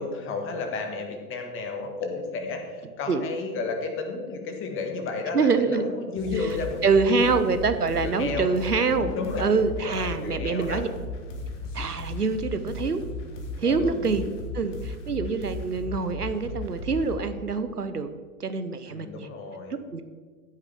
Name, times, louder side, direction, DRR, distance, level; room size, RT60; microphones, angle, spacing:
voice 1, 0.0-6.8 7.1-7.4 8.0-8.6 9.0-9.5 9.8-10.8 13.6-14.1 18.9-19.7, left 4 dB, 25° left, 4 dB, 1.9 m, -32 dB
voice 2, 5.3-5.9 6.8-9.1 9.4-10.9 11.7-13.0 13.6-14.3 14.5-18.1 18.4-19.3 19.7-20.0, right 4 dB, 90° right, 10 dB, 0.9 m, -25 dB
sound 1, 6.2-17.1, left 2 dB, 50° left, 2.3 m, -36 dB
15.0 x 9.0 x 3.6 m, 1.5 s
figure-of-eight pair, 95°, 45 cm